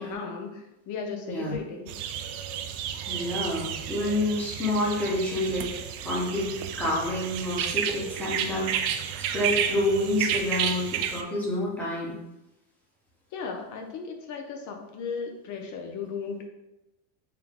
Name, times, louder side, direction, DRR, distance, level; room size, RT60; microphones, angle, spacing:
voice 1, 0.0-1.9 13.3-16.4, left 5 dB, 45° left, 3 dB, 0.7 m, -36 dB
sound 1, 1.9-11.2, right 9 dB, 80° right, 0.5 m, -31 dB
voice 2, 3.1-5.7 6.0-12.2, left 1 dB, 5° left, -6 dB, 1.0 m, -28 dB
3.7 x 2.3 x 3.5 m, 0.96 s
supercardioid pair, 125°, 43 cm